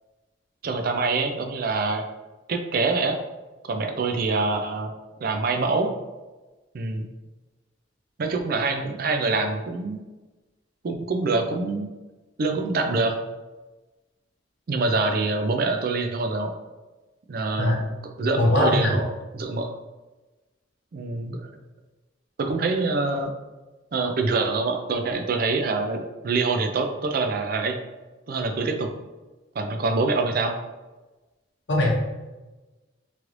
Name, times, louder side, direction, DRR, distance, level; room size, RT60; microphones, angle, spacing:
voice 1, 0.6-2.0 2.5-3.2 3.6-4.9 5.2-5.9 6.7-7.1 8.2-10.0 10.8-11.9 12.4-13.2 14.7-16.5 17.3-17.8 18.2-19.7 20.9-21.5 22.4-23.3 23.9-27.8 28.3-28.9 29.6-30.5, right 3 dB, 50° right, 5 dB, 0.4 m, -25 dB
voice 2, 18.4-18.9 31.7-31.9, left 1 dB, 65° left, -2 dB, 0.8 m, -21 dB
3.1 x 3.0 x 2.5 m, 1.1 s
head